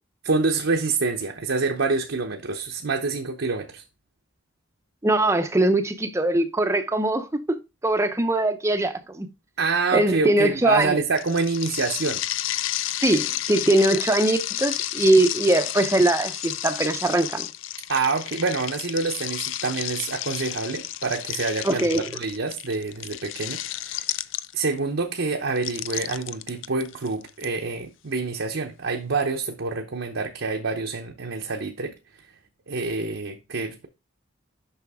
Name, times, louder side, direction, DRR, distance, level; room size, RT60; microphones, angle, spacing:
voice 1, 0.2-3.8 9.6-12.2 17.9-24.0 24.5-31.9 32.7-33.9, right 4 dB, 60° right, 0.8 m, -27 dB
voice 2, 5.0-9.3 9.9-11.0 13.0-17.5 21.6-22.0, right 1 dB, 15° right, 0.6 m, -21 dB
sound 1, 11.2-24.8 25.6-27.4, left 13 dB, 65° left, 0.4 m, -31 dB
6.9 x 5.7 x 3.5 m
head